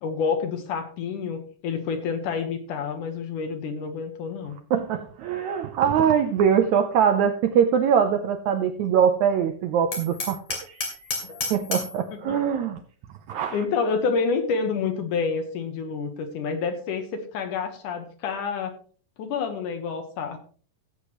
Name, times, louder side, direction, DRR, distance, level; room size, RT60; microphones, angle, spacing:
voice 1, 0.0-4.6 11.2-11.4 12.1-12.4 13.5-18.7 19.2-20.4, left 5 dB, 70° left, 2.6 m, -28 dB
voice 2, 4.7-10.9 11.5-12.8 13.3-13.6, right 8 dB, 75° right, 1.7 m, -22 dB
Hammer, 9.9-12.0, left 3 dB, 50° left, 3.6 m, -31 dB
17.0 x 8.1 x 3.0 m
omnidirectional pair, 4.0 m